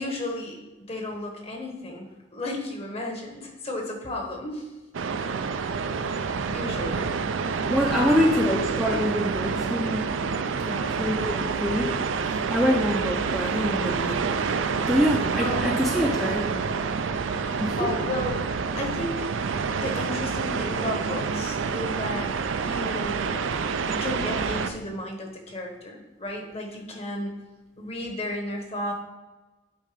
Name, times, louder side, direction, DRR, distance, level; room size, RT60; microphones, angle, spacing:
voice 1, 0.0-4.7 6.1-7.1 7.9-8.3 10.6-11.0 15.3-15.8 17.4-18.4 18.7-19.3 19.8-23.3 23.9-27.4 27.8-28.9, left 1 dB, 30° left, 2 dB, 1.2 m, -34 dB
sound 1, 4.9-24.7, right 5 dB, 85° right, 0.5 m, -28 dB
voice 2, 7.7-10.0 11.0-11.9 12.2-14.2 14.9-16.5 17.6-17.9, equal, ahead, -2 dB, 0.5 m, -25 dB
8.6 x 3.8 x 5.1 m, 1.1 s
head